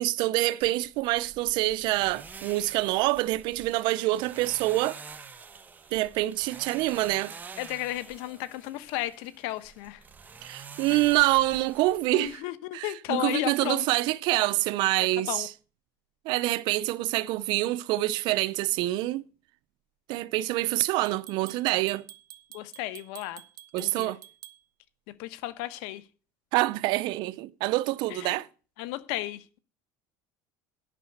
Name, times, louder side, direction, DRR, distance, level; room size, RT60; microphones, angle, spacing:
voice 1, 0.0-5.0 5.9-7.3 10.4-12.4 12.7-15.5 16.3-19.2 20.1-22.0 23.7-24.2 26.5-28.5, right 18 dB, 60° right, 0.6 m, -26 dB
sound 1, 0.6-12.4, right 5 dB, 20° right, 1.0 m, -47 dB
voice 2, 7.6-10.0 10.9-11.0 12.1-13.9 15.3-15.5 22.5-23.4 23.8-24.1 25.2-26.0 28.1-28.4 28.8-29.6, left 16 dB, 75° left, 1.1 m, -34 dB
sound 2, 15.3-15.4 18.1-18.3 21.1-24.6, right 12 dB, 45° right, 1.0 m, -48 dB
9.9 x 5.8 x 7.8 m
cardioid pair, 130°, 9 cm